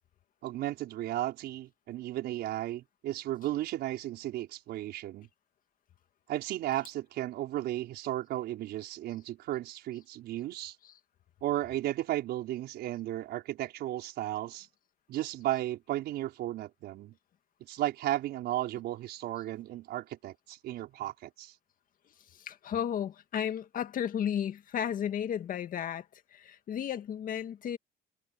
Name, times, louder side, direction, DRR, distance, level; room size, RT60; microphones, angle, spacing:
voice 1, 0.4-5.3 6.3-10.8 11.4-14.7 15.1-17.1 17.7-21.5, right 14 dB, 75° right, 5.5 m, -34 dB
voice 2, 22.3-26.1 26.3-27.8, left 9 dB, 55° left, 2.0 m, -33 dB
cardioid pair, 110°, 17 cm